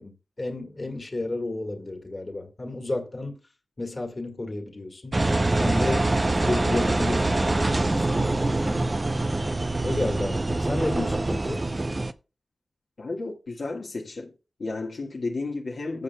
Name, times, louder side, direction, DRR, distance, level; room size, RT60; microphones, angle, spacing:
voice 1, 0.0-3.4 3.8-5.2 5.6-8.8 9.8-11.6, left 2 dB, 35° left, 1.8 m, -32 dB
Engine, 5.1-12.1, right 2 dB, 30° right, 0.5 m, -24 dB
voice 2, 13.0-14.3 14.6-16.0, left 3 dB, 65° left, 1.5 m, -32 dB
15.0 x 6.6 x 2.2 m
wide cardioid pair, 105°, 0 cm